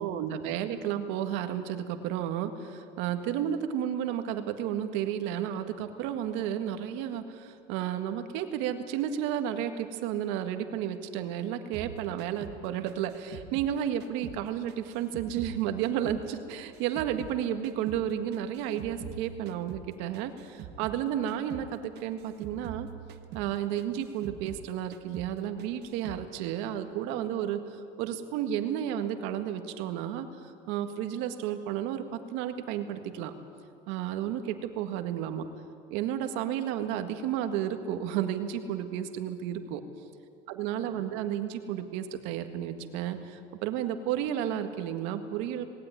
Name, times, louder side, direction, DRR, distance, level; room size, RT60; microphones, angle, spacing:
voice 1, 0.0-22.9 23.3-27.6 28.0-33.3 33.9-35.5 35.9-39.8 40.5-45.6, right 10 dB, 80° right, 8 dB, 1.8 m, -32 dB
sound 1, 11.7-14.4 14.7-17.4 17.6-21.0 21.3-21.7 21.9-24.7 24.9-25.3 25.6-26.2, right 9 dB, 60° right, 1.5 m, -44 dB
19.0 x 18.0 x 9.7 m, 2.4 s
supercardioid pair, 105°, 19 cm